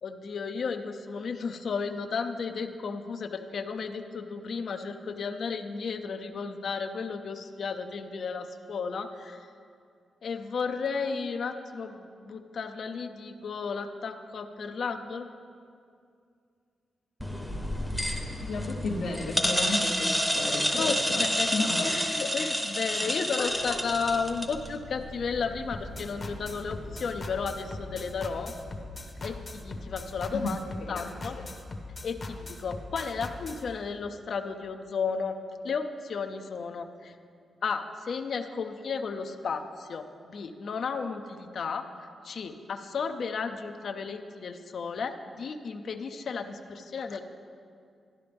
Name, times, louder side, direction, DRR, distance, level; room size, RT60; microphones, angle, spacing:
voice 1, 0.0-9.5 10.2-15.3 20.7-28.5 29.2-30.6 30.9-31.4 32.0-35.3 35.6-37.1 37.6-47.2, left 5 dB, 55° left, 7 dB, 0.5 m, -33 dB
sound 1, 17.2-24.7, equal, ahead, 0.8 m, -29 dB
voice 2, 18.4-21.9 23.0-23.8 30.3-30.5 30.9-31.1 31.4-31.5, left 3 dB, 90° left, -4 dB, 0.9 m, -33 dB
sound 2, 23.5-30.5, right 1 dB, 55° right, 1.7 m, -47 dB
sound 3, 25.7-33.6, left 2 dB, 30° left, 0.8 m, -40 dB
13.0 x 10.5 x 3.4 m, 2.3 s
wide cardioid pair, 135°, 0 cm